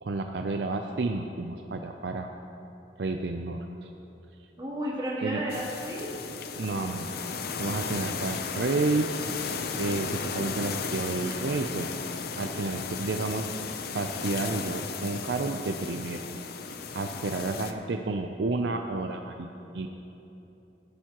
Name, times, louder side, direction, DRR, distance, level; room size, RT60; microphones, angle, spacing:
voice 1, 0.0-2.3 3.0-3.9 5.2-5.4 6.6-7.1 7.6-9.1 9.8-11.9 12.4-13.4 13.9-16.2 16.9-19.5 19.7-19.9, right 3 dB, 65° right, 4 dB, 0.5 m, -30 dB
voice 2, 4.6-6.0, equal, 25° right, -7 dB, 2.9 m, -32 dB
sound 1, 5.5-17.7, left 5 dB, 55° left, 0.6 m, -35 dB
17.5 x 10.5 x 3.0 m, 3.0 s
head